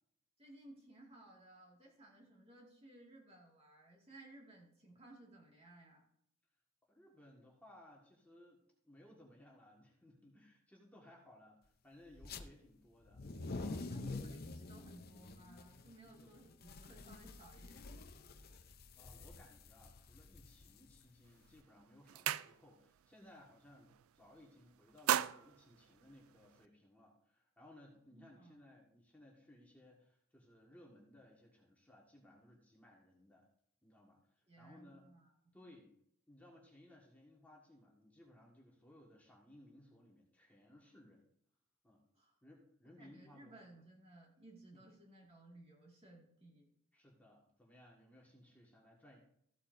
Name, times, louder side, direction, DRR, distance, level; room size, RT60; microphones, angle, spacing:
voice 1, 0.4-6.0 13.9-18.6 28.1-28.6 34.5-35.3 42.2-42.3 43.0-46.7, right 1 dB, 30° right, -1 dB, 2.1 m, -59 dB
voice 2, 6.9-8.6 8.8-13.2 13.6-13.9 16.2-16.3 18.9-33.5 33.8-35.1 35.5-35.9 36.3-41.3 41.8-42.0 42.4-43.5 44.7-44.8 46.9-49.2, left 1 dB, 10° left, -3 dB, 1.7 m, -62 dB
sound 1, 12.2-12.4 13.0-21.5, left 3 dB, 45° left, 0.6 m, -48 dB
sound 2, 21.3-21.5 21.8-23.0 23.3-23.6 23.9-24.5 24.8-26.7, right 11 dB, 90° right, 0.4 m, -38 dB
14.5 x 8.4 x 2.6 m, 0.72 s
head